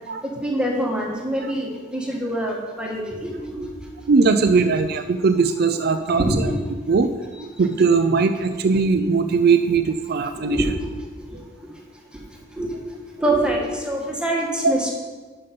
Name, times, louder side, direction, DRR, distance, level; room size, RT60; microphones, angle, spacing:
voice 1, 0.2-3.7 4.6-4.8 6.1-6.6 10.3-10.8 12.6-12.7 13.2-14.9, right 1 dB, 5° right, -2 dB, 1.5 m, -25 dB
voice 2, 4.1-6.3 6.9-7.1 7.4-10.6 11.3-11.5 14.6-14.7, right 4 dB, 55° right, 8 dB, 0.4 m, -19 dB
11.0 x 5.5 x 5.2 m, 1.4 s
head